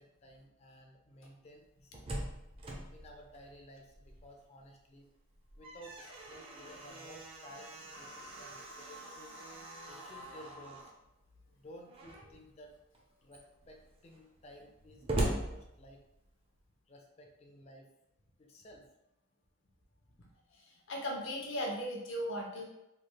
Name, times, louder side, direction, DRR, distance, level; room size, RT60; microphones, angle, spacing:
voice 1, 0.0-2.3 2.9-5.1 5.6-9.3 9.9-10.9 11.5-12.7 13.2-16.0 16.9-17.9 18.4-18.9 20.2-20.3, equal, 30° left, 1 dB, 0.5 m, -55 dB
Slam, 1.6-4.4 4.8-4.9 5.3-11.0 11.9-12.4 12.9-13.0 13.3-16.4, right 1 dB, 25° right, 0.4 m, -41 dB
voice 2, 20.9-22.6, equal, 70° left, 0 dB, 0.7 m, -37 dB
3.2 x 3.1 x 2.2 m, 0.88 s
head